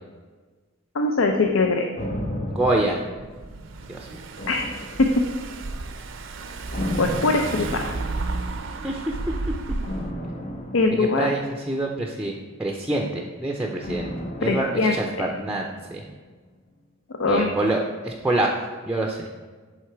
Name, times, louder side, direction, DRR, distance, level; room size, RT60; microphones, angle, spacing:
voice 1, 0.9-1.8 4.5-4.7 5.0-5.1 7.0-7.9 10.7-11.3 14.4-14.9 17.2-17.5, left 3 dB, 80° left, 3 dB, 0.5 m, -21 dB
sound 1, 2.0-3.9 4.4-5.6 6.7-8.4 9.8-12.2 13.8-16.0 16.3-16.4, left 1 dB, 35° left, 0.7 m, -34 dB
voice 2, 2.5-3.1 3.9-4.3 8.7-9.2 11.0-14.1 14.4-16.0 17.3-19.3, right 2 dB, 5° right, 0 dB, 0.5 m, -26 dB
Car / Engine, 3.2-10.1, right 3 dB, 65° right, 0.5 m, -32 dB
8.0 x 3.7 x 4.5 m, 1.4 s
head